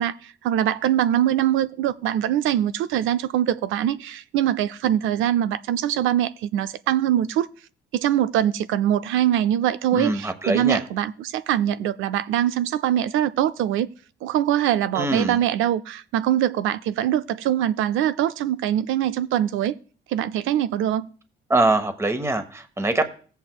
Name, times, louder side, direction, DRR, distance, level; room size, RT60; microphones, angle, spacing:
voice 1, 0.0-7.5 7.9-13.9 14.2-19.8 20.1-21.1, right 11 dB, 85° right, 0.4 m, -23 dB
voice 2, 9.9-10.8 14.9-15.4 21.5-23.1, right 2 dB, 15° right, 1.0 m, -23 dB
16.0 x 8.0 x 2.3 m
cardioid pair, 90°, 20 cm